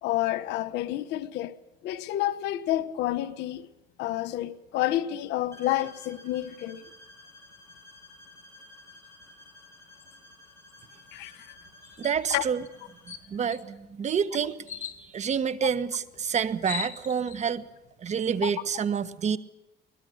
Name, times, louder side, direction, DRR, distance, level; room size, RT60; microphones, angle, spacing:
voice 1, 0.0-1.5 1.8-3.7 4.0-6.8 11.1-11.4 12.3-12.4 18.4-18.5, left 14 dB, 85° left, 1.3 m, -29 dB
sound 1, 5.5-13.3, left 2 dB, 15° left, 7.9 m, -53 dB
sound 2, 12.0-12.2 12.6-12.7 13.1-13.6 14.7-15.0 16.1-16.2 16.4-17.4, left 8 dB, 45° left, 2.6 m, -37 dB
voice 2, 12.0-12.6 13.1-17.7 18.0-19.4, right 7 dB, 45° right, 1.3 m, -28 dB
22.5 x 20.5 x 6.5 m
cardioid pair, 110°, 17 cm